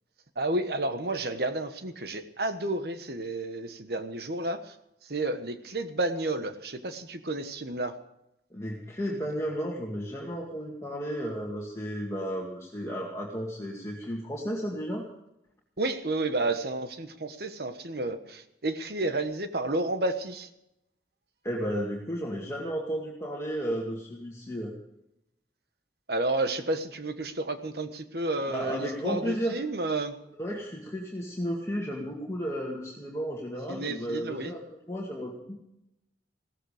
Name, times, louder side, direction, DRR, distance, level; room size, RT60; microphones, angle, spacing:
voice 1, 0.4-4.6 5.1-7.9 15.8-20.5 26.1-30.1 33.7-34.5, right 2 dB, 60° right, 9 dB, 1.3 m, -31 dB
voice 2, 8.5-15.0 21.4-24.7 28.5-29.6 30.4-35.6, equal, 15° left, -2 dB, 2.1 m, -33 dB
16.5 x 14.0 x 5.0 m, 0.84 s
head